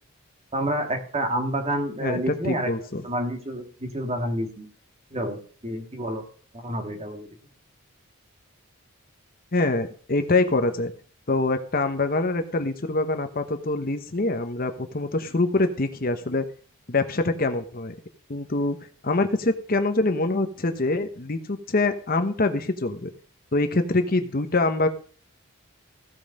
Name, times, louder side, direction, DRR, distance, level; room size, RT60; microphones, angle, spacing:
voice 1, 0.5-2.7 3.0-4.7 5.1-6.3 6.5-7.3, right 1 dB, 30° right, 5 dB, 1.8 m, -29 dB
voice 2, 2.0-3.0 9.5-10.9 11.3-16.4 16.9-18.0 18.3-18.8 19.0-23.1 23.5-24.9, left 2 dB, 40° left, 8 dB, 1.0 m, -24 dB
15.5 x 5.5 x 6.4 m, 0.43 s
head